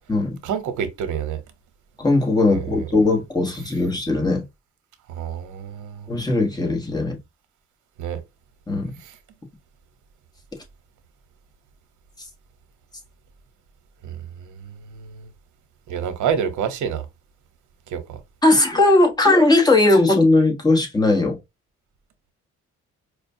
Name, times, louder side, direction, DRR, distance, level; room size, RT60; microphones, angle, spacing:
voice 1, 0.4-1.4 2.5-2.9 5.1-6.1 8.0-8.2 9.0-9.1 14.0-15.3 15.9-17.1 17.9-18.2, right 8 dB, 80° right, 0.9 m, -28 dB
voice 2, 2.0-4.4 6.1-7.2 8.7-8.9 18.4-21.4, left 2 dB, 15° left, 1.2 m, -18 dB
4.8 x 2.2 x 2.7 m
cardioid pair, 90°, 30 cm